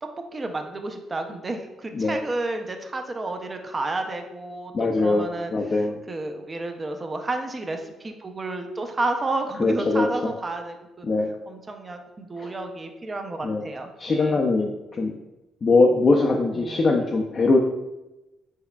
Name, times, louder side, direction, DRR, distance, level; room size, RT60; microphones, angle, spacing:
voice 1, 0.0-5.8 6.1-11.1 11.5-14.4 16.5-17.0, right 2 dB, 30° right, 5 dB, 0.5 m, -31 dB
voice 2, 4.7-5.9 9.6-10.3 11.0-11.3 12.4-12.5 13.4-13.7 14.0-15.1 15.6-17.6, left 3 dB, 40° left, 0 dB, 0.4 m, -22 dB
4.6 x 4.1 x 2.3 m, 0.99 s
cardioid pair, 90°, 0 cm